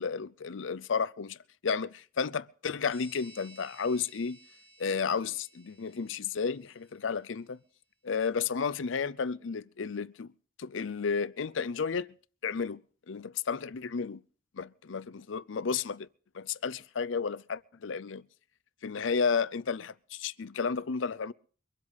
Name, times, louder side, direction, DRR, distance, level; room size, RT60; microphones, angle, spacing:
voice 1, 0.0-1.4 1.6-4.4 4.8-7.6 8.0-10.3 10.6-12.1 12.4-12.8 13.1-14.2 14.5-16.1 16.3-18.3 18.8-21.3, left 5 dB, 70° left, 0.6 m, -32 dB
sound 1, 2.9-7.2, right 1 dB, 35° right, 3.4 m, -57 dB
23.5 x 8.1 x 5.6 m
head